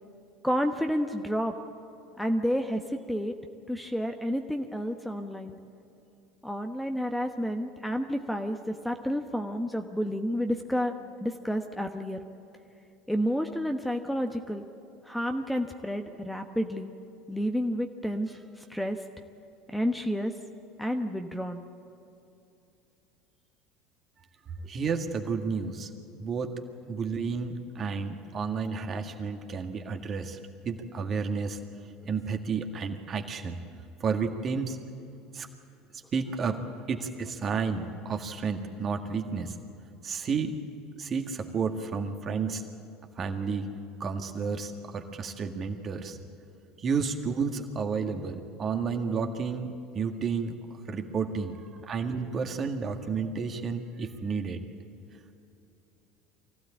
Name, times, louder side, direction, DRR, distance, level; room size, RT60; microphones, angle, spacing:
voice 1, 0.4-1.5 2.2-2.8 3.1-3.3 3.7-5.6 6.4-10.9 11.2-12.2 13.1-14.6 15.1-16.9 17.3-18.4 18.7-19.0 19.7-20.3 20.8-21.6, equal, 5° left, 5 dB, 1.2 m, -30 dB
voice 2, 24.7-25.9 26.2-26.5 26.9-31.6 32.1-33.6 34.0-34.8 35.3-35.5 35.9-36.6 36.9-39.6 40.0-40.6 41.0-42.6 43.2-43.7 44.0-46.2 46.8-54.6, right 5 dB, 35° right, 5 dB, 1.9 m, -31 dB
24.0 x 15.5 x 8.7 m, 2.7 s
figure-of-eight pair, 70°, 0 cm